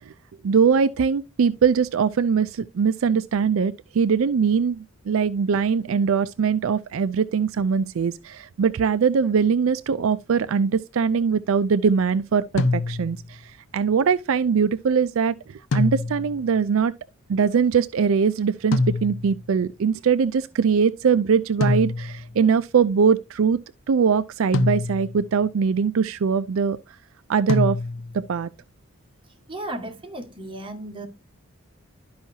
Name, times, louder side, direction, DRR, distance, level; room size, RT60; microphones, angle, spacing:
voice 1, 0.4-13.4 13.7-16.9 17.3-23.6 23.9-26.8 27.3-27.8 28.1-28.5, right 6 dB, 70° right, 0.4 m, -21 dB
sound 1, 12.6-13.3 15.7-16.5 18.7-19.5 21.6-22.4 24.5-25.3 27.5-28.3, left 3 dB, 60° left, 0.5 m, -25 dB
voice 2, 29.5-31.1, right 1 dB, 25° right, 1.8 m, -34 dB
12.0 x 5.5 x 2.8 m
head